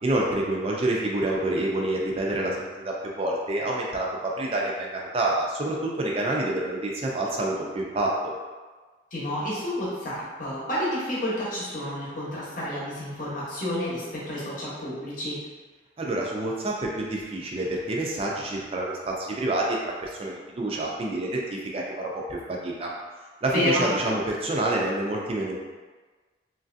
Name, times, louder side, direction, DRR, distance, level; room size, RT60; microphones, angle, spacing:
voice 1, 0.0-8.3 16.0-22.9 23.4-25.6, right 1 dB, 30° right, -2 dB, 0.4 m, -28 dB
voice 2, 9.1-15.4 23.5-23.9, left 1 dB, 50° left, -7 dB, 0.9 m, -30 dB
3.1 x 2.5 x 2.5 m, 1.4 s
head